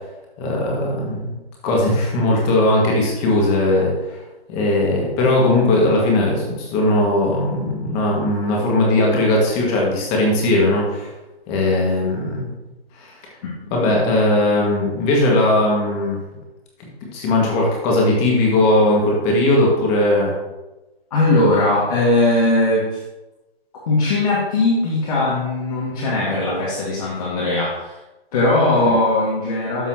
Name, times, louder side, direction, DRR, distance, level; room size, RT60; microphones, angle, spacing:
voice 1, 0.4-4.2 4.5-11.1 11.5-12.5 13.0-13.1 13.7-16.2 17.1-20.3 28.8-29.0, left 1 dB, 20° left, -2 dB, 1.9 m, -18 dB
voice 2, 21.1-23.0 23.9-28.0 28.3-29.9, left 2 dB, 35° left, -6 dB, 2.0 m, -19 dB
12.5 x 5.5 x 2.9 m, 1.0 s
figure-of-eight pair, 145°, 31 cm